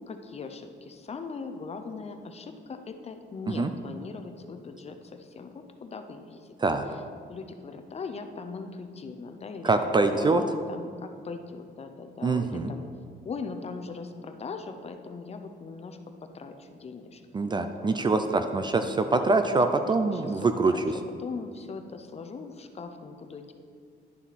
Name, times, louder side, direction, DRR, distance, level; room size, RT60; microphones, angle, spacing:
voice 1, 0.1-6.6 7.3-12.8 13.2-16.0 16.3-18.5 19.3-19.4 20.0-20.4 20.7-20.8 21.2-23.5, left 4 dB, 35° left, 6 dB, 0.6 m, -40 dB
voice 2, 9.6-10.4 12.2-12.7 17.3-20.8, right 3 dB, 25° right, 8 dB, 0.4 m, -24 dB
11.0 x 7.1 x 4.2 m, 2.2 s
cardioid pair, 150°, 19 cm